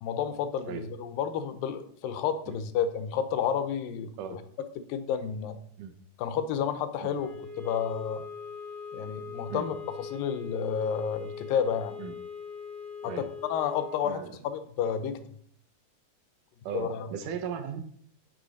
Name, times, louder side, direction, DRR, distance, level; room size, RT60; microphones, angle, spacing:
voice 1, 0.0-4.4 4.8-5.6 6.2-7.3 7.6-8.2 8.9-11.9 13.0-15.2 16.7-17.1, left 8 dB, 85° left, 10 dB, 2.5 m, -31 dB
sound 1, 7.1-14.1, left 6 dB, 40° right, 3.6 m, -41 dB
voice 2, 16.7-17.8, right 8 dB, 75° right, 7 dB, 2.3 m, -36 dB
11.5 x 6.2 x 4.1 m, 0.62 s
omnidirectional pair, 3.9 m